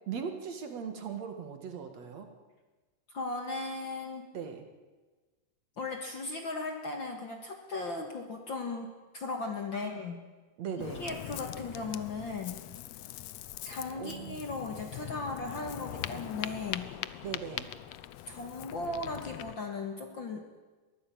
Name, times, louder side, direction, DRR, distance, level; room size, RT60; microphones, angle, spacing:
voice 1, 0.1-2.3 4.3-4.7 9.7-10.0 10.6-11.0 13.9-14.4 17.2-17.7, right 7 dB, 55° right, 6 dB, 2.8 m, -39 dB
voice 2, 3.1-4.3 5.8-10.2 11.0-12.6 13.6-16.9 18.3-20.5, left 3 dB, 45° left, 4 dB, 1.9 m, -37 dB
Ocean, 10.8-19.6, left 13 dB, 75° left, 1.6 m, -42 dB
22.5 x 15.0 x 8.7 m, 1.3 s
omnidirectional pair, 3.7 m